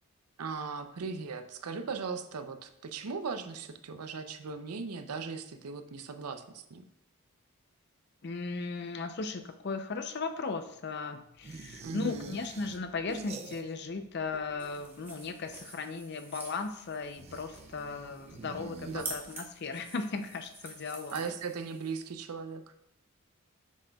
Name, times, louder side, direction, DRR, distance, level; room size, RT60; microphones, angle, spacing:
voice 1, 0.4-6.8 11.8-12.4 18.8-19.2 21.1-22.6, right 5 dB, 90° right, 9 dB, 0.6 m, -38 dB
voice 2, 8.2-21.2, left 4 dB, 50° left, 8 dB, 0.5 m, -37 dB
sound 1, 11.4-14.0 14.3-15.1 17.1-19.6, right 3 dB, 30° right, 0.3 m, -47 dB
sound 2, 14.6-22.1, right 2 dB, 10° right, 1.1 m, -48 dB
7.6 x 6.3 x 2.3 m, 0.77 s
head